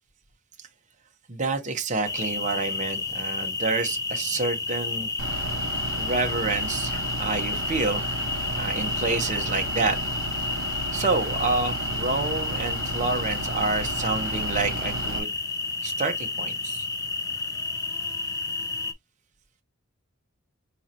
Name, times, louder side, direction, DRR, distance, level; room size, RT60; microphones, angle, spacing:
voice 1, 1.3-5.1 6.0-8.2 8.5-10.0 10.9-15.3 15.8-16.9, right 3 dB, 35° right, 0.8 m, -28 dB
sound 1, 2.0-18.9, left 3 dB, 15° left, 0.4 m, -31 dB
Bus / Idling, 5.2-15.2, right 2 dB, 65° right, 0.7 m, -33 dB
4.9 x 2.9 x 2.6 m
head